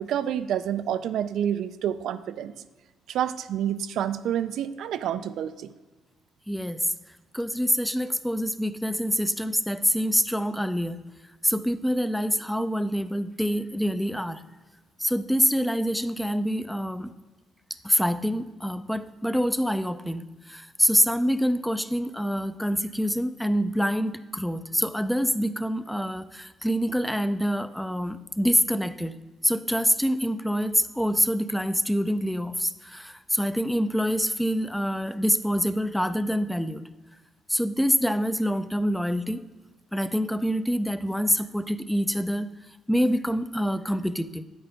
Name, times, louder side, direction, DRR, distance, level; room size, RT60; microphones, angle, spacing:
voice 1, 0.0-2.5 3.1-5.7, right 10 dB, 80° right, 11 dB, 0.4 m, -28 dB
voice 2, 6.5-6.9 7.3-11.0 11.4-14.4 15.0-17.1 17.8-29.1 29.4-36.8 37.5-39.4 39.9-42.5 42.9-44.4, equal, 5° left, 12 dB, 0.4 m, -26 dB
9.2 x 8.8 x 3.4 m, 1.3 s
cardioid pair, 90°, 0 cm